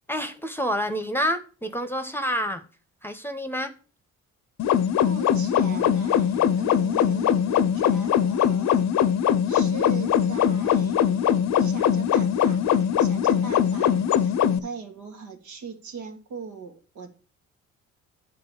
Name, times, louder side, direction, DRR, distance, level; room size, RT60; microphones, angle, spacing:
voice 1, 0.1-2.6 3.0-3.7, equal, 5° left, 1.0 m, -28 dB
sound 1, 4.6-14.6, left 9 dB, 65° left, 0.7 m, -21 dB
voice 2, 5.0-8.9 9.5-17.1, right 4 dB, 75° right, 1.9 m, -40 dB
9.4 x 3.9 x 7.1 m
cardioid pair, 90°, 30 cm